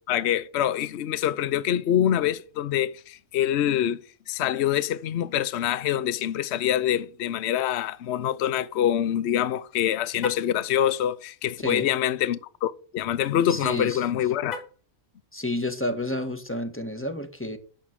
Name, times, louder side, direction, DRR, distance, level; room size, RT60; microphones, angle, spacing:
voice 1, 0.1-4.0 4.3-14.6, left 10 dB, 60° left, 0.9 m, -25 dB
Car, 10.1-10.6 14.4-14.9, left 3 dB, 90° left, 2.3 m, -37 dB
voice 2, 13.5-14.0 15.3-17.6, left 1 dB, 10° left, 1.5 m, -30 dB
9.3 x 6.6 x 7.7 m
omnidirectional pair, 1.4 m